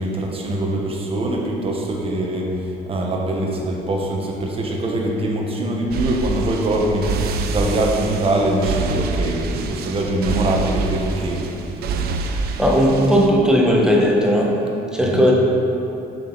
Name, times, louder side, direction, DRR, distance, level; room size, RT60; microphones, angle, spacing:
voice 1, 0.0-11.5 15.0-15.2, right 1 dB, 35° right, -1 dB, 1.3 m, -23 dB
sound 1, 5.9-13.3, right 3 dB, 65° right, 0.6 m, -26 dB
voice 2, 12.6-14.6 14.9-15.3, equal, 5° right, -2 dB, 1.2 m, -16 dB
7.6 x 6.3 x 4.1 m, 2.9 s
cardioid pair, 110°, 17 cm